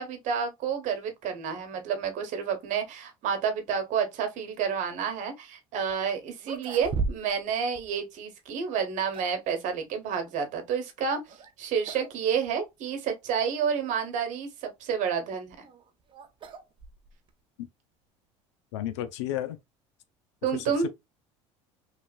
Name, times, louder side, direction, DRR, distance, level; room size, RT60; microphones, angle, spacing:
voice 1, 0.0-11.2 11.6-15.7 20.4-20.9, right 7 dB, 60° right, 1.1 m, -30 dB
sound 1, 5.9-6.0 6.4-7.5 7.7-7.9 8.7-9.5 11.3-11.5 11.8-12.2 12.5-12.6 13.3-13.4 15.2-17.3, right 4 dB, 35° right, 0.5 m, -36 dB
voice 2, 18.7-19.6 20.5-20.9, left 12 dB, 90° left, 0.5 m, -33 dB
2.9 x 2.3 x 2.4 m
supercardioid pair, 85°, 15 cm